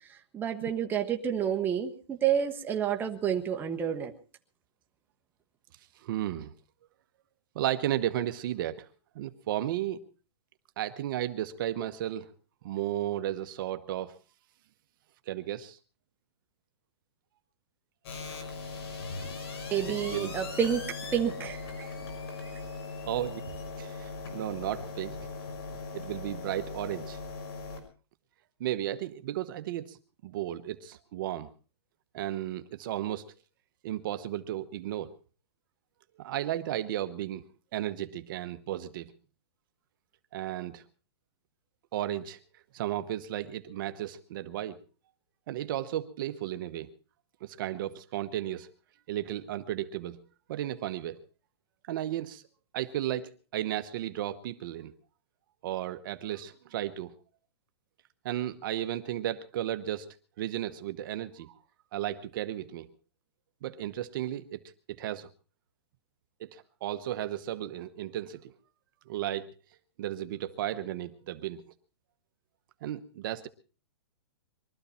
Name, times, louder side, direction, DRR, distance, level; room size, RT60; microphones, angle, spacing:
voice 1, 0.3-4.1 19.7-21.6 22.4-22.5, right 8 dB, 15° right, 2 dB, 1.4 m, -29 dB
voice 2, 6.0-6.5 7.5-8.9 9.1-10.0 10.8-12.3 12.6-14.2 15.3-15.8 19.8-20.3 21.8-21.9 23.1-25.2 25.9-27.2 28.6-30.0 30.2-31.5 32.1-33.2 33.8-35.1 36.2-37.4 37.7-39.1 40.3-40.8 41.9-44.8 45.5-46.9 47.4-48.7 49.1-50.2 50.5-51.2 51.9-52.4 52.7-54.9 55.6-57.1 58.2-60.1 60.4-61.6 61.9-62.9 63.6-64.6 64.9-65.3 66.4-68.5 69.1-69.5 70.0-71.7 72.8-73.5, right 12 dB, 50° right, 10 dB, 1.0 m, -34 dB
sound 1, 18.0-27.8, left 4 dB, 65° left, 6.0 m, -39 dB
23.0 x 13.5 x 4.3 m, 0.36 s
hypercardioid pair, 150°, 14 cm